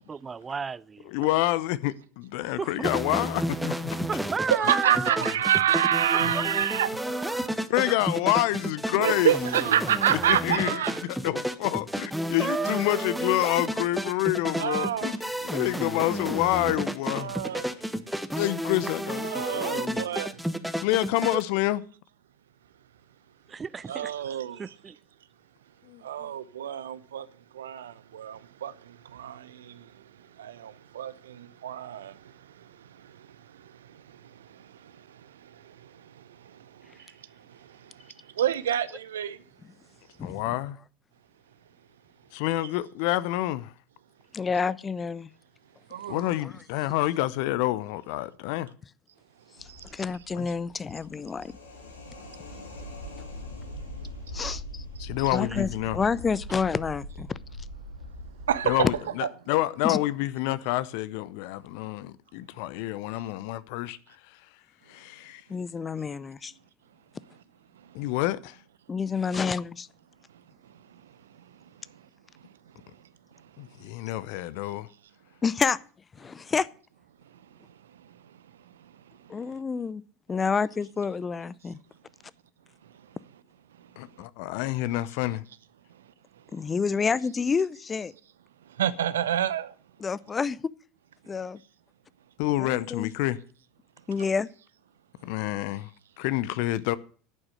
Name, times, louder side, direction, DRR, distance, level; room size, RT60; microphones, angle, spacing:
voice 1, 0.1-1.1 2.5-2.9 4.1-5.4 6.1-6.5 6.9-7.6 10.1-10.4 10.9-11.1 12.4-13.3 19.4-19.5 21.3-21.4 23.5-24.1 24.6-25.0 55.4-55.7, right 5 dB, 25° right, 0.5 m, -33 dB
voice 2, 1.1-4.1 7.7-9.3 10.3-15.1 15.4-17.3 18.3-20.0 20.8-21.8 25.9-26.0 40.2-40.8 42.3-43.7 46.1-48.7 50.4-50.5 55.0-56.0 58.6-64.0 64.9-65.4 67.9-68.6 73.6-74.9 84.0-85.4 92.4-93.4 95.2-95.9 96.2-97.0, left 16 dB, 60° left, 0.7 m, -28 dB
sound 1, 2.8-21.4, equal, ahead, 1.2 m, -31 dB
voice 3, 4.6-6.9 9.0-11.0 14.6-15.1 17.1-17.6 19.2-20.3 23.9-24.6 26.0-27.2 27.6-28.7 29.1-29.4 30.4-32.1 38.4-39.4 45.9-46.2 58.5-58.9 88.8-89.7, right 10 dB, 75° right, 0.7 m, -27 dB
voice 4, 40.2-40.6 44.3-45.3 46.1-46.5 49.6-51.5 54.3-54.8 55.2-57.4 59.8-60.0 65.5-66.5 68.9-69.9 75.4-75.8 76.2-76.7 79.3-80.0 80.3-81.8 86.5-88.1 90.0-90.7 91.3-91.6 92.6-93.1 94.1-94.5, left 5 dB, 25° left, 0.6 m, -29 dB
sound 2, 49.6-59.0, left 1 dB, 85° left, 2.5 m, -41 dB
11.0 x 8.8 x 6.4 m
figure-of-eight pair, 75°, 0 cm